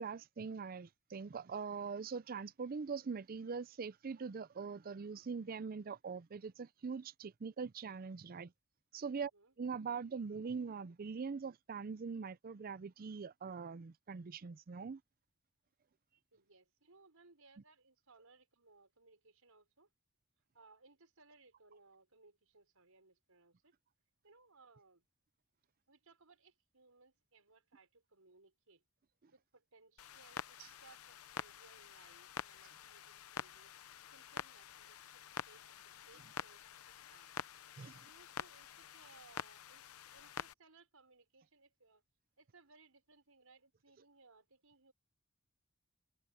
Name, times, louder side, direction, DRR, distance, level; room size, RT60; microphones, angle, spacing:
voice 1, 0.0-8.5 8.9-9.3 9.6-15.0 30.6-30.7 37.8-38.0, right 5 dB, 45° right, 0.5 m, -42 dB
voice 2, 9.2-9.5 16.3-19.9 20.5-23.7 24.2-25.0 25.9-28.8 29.3-33.7 34.1-37.3 38.0-42.0 42.4-44.9, right 3 dB, 80° right, 5.4 m, -65 dB
Clock, 30.0-40.5, left 8 dB, 85° left, 0.7 m, -48 dB
head